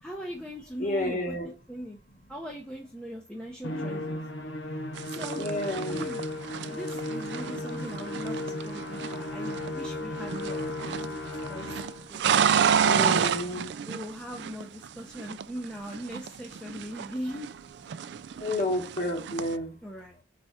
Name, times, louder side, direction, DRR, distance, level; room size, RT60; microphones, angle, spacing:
voice 1, 0.0-1.4 1.7-2.0 2.3-4.2 5.0-5.6 5.9-6.2 6.7-11.8 12.1-12.2 12.6-13.5 13.9-17.5 19.8-20.2, equal, 5° left, 0.7 m, -40 dB
voice 2, 0.8-1.5 5.4-6.1 12.8-13.7 18.4-19.7, left 1 dB, 45° left, 1.6 m, -30 dB
Musical instrument, 3.6-12.1, left 1 dB, 80° left, 0.9 m, -35 dB
sound 1, 5.0-9.9 10.2-11.1 11.4-14.9 15.2-17.6 17.9-19.6, right 7 dB, 65° right, 0.3 m, -29 dB
4.6 x 4.2 x 5.7 m
head